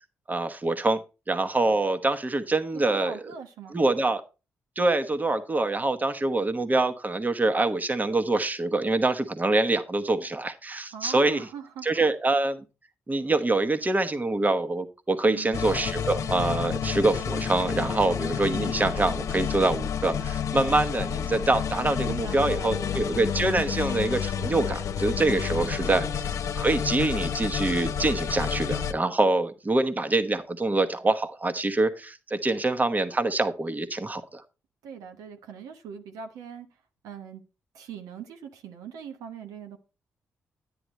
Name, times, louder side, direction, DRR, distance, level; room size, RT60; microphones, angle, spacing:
voice 1, 0.3-1.0 1.3-3.1 3.7-4.2 4.8-11.5 11.8-12.6 13.1-26.1 26.5-34.4, right 2 dB, 30° right, 1.2 m, -25 dB
voice 2, 2.7-3.8 10.9-12.1 15.2-15.7 22.1-22.9 25.6-26.1 34.8-37.4 37.7-39.8, right 7 dB, 85° right, 1.1 m, -42 dB
sound 1, 15.5-28.9, left 8 dB, 65° left, 0.9 m, -30 dB
10.0 x 9.7 x 3.2 m
supercardioid pair, 50°, 6 cm